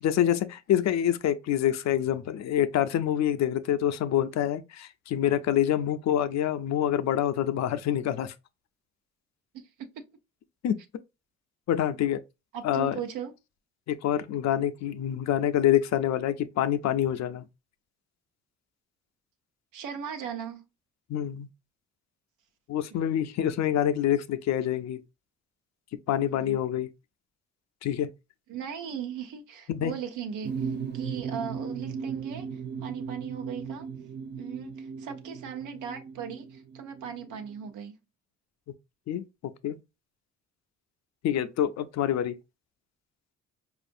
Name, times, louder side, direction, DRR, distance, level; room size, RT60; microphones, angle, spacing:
voice 1, 0.0-8.3 10.6-10.8 11.7-12.2 12.6-13.0 13.9-17.5 21.1-21.5 22.7-25.0 26.1-26.9 27.8-28.1 29.7-29.9 39.1-39.2 39.6-39.8 41.2-42.4, left 11 dB, 65° left, 0.5 m, -26 dB
voice 2, 9.5-10.0 12.5-13.3 19.7-20.6 22.9-23.0 26.3-26.6 28.5-33.9 34.4-38.0, right 8 dB, 90° right, 0.8 m, -38 dB
sound 1, 30.4-37.7, right 6 dB, 35° right, 0.5 m, -37 dB
4.7 x 2.5 x 2.6 m
cardioid pair, 90°, 30 cm